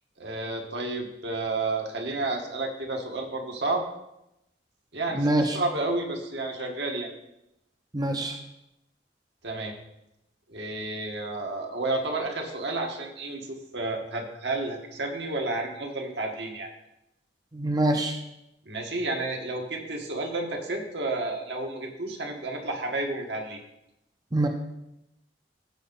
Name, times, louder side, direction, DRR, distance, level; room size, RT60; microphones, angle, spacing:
voice 1, 0.2-3.8 4.9-7.1 9.4-9.7 10.5-13.4 13.7-16.7 18.7-23.6, right 2 dB, 75° right, 1 dB, 1.7 m, -31 dB
voice 2, 5.1-5.6 7.9-8.4 17.5-18.2 24.3-24.5, right 1 dB, 25° right, 4 dB, 0.6 m, -24 dB
15.0 x 5.4 x 4.1 m, 0.86 s
head